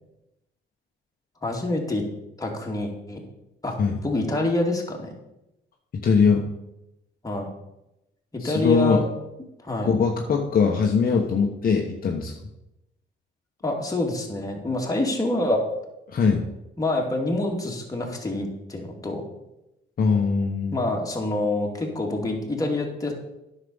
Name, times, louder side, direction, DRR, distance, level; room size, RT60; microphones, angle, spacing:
voice 1, 1.4-2.0 2.4-3.2 3.6-3.8 4.0-5.1 7.2-7.5 8.3-9.0 9.6-9.9 13.6-15.6 16.8-19.3 20.7-23.1, left 2 dB, 15° left, 0 dB, 2.3 m, -26 dB
voice 2, 5.9-6.5 8.4-9.0 9.8-12.3 16.1-16.5 20.0-20.7, left 5 dB, 45° left, 1 dB, 1.1 m, -21 dB
9.8 x 6.5 x 5.5 m, 0.90 s
cardioid pair, 90°, 20 cm